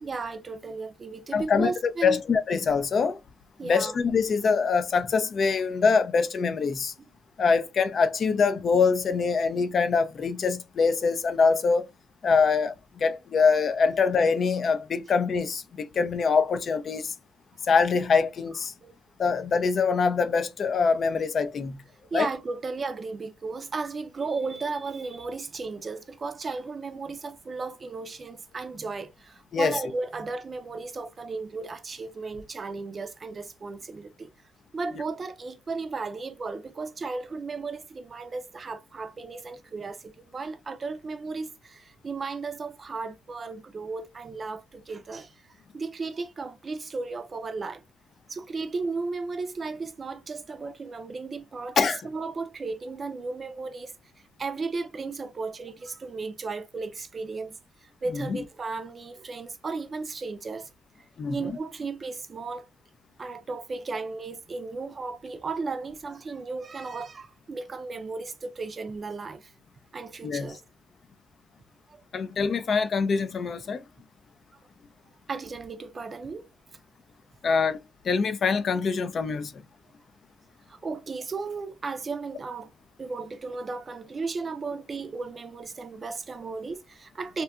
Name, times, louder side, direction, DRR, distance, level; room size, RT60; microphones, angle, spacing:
voice 1, 0.0-2.2 3.6-4.0 7.0-7.1 18.8-18.9 22.1-34.3 34.7-45.4 45.7-47.8 48.3-51.8 52.0-54.0 54.4-60.7 61.3-62.7 63.2-69.5 69.9-70.6 71.9-72.0 75.3-76.5 80.7-82.7 83.0-87.4, right 4 dB, 35° right, 0.4 m, -35 dB
voice 2, 1.3-1.7 2.0-3.2 3.6-6.9 7.4-11.9 12.2-17.1 17.7-18.7 19.2-21.8 22.1-22.3 29.5-29.7 51.8-52.0 58.1-58.4 61.2-61.4 70.2-70.5 72.1-73.8 77.4-77.8 78.0-79.6, left 5 dB, 50° left, 0.3 m, -24 dB
2.7 x 2.2 x 2.3 m
cardioid pair, 90°, 0 cm